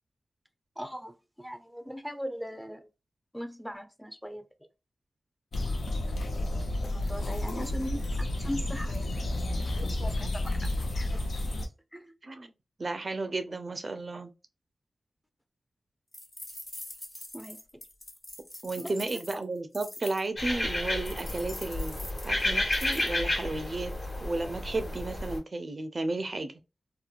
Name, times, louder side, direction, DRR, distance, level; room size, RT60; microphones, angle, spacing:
voice 1, 0.8-2.9 3.3-4.4 6.8-9.1 9.6-11.2 11.9-12.1 17.3-17.8 18.8-18.9, equal, ahead, 0.5 m, -40 dB
sound 1, 5.5-11.7, left 1 dB, 85° left, 0.6 m, -31 dB
voice 2, 12.8-14.3 18.6-23.9 24.2-26.5, right 2 dB, 50° right, 0.4 m, -33 dB
sound 2, 16.1-20.3 21.1-23.2, left 1 dB, 30° left, 1.1 m, -44 dB
sound 3, 20.4-25.4, left 1 dB, 50° left, 1.2 m, -31 dB
2.9 x 2.1 x 2.4 m
cardioid pair, 55°, 0 cm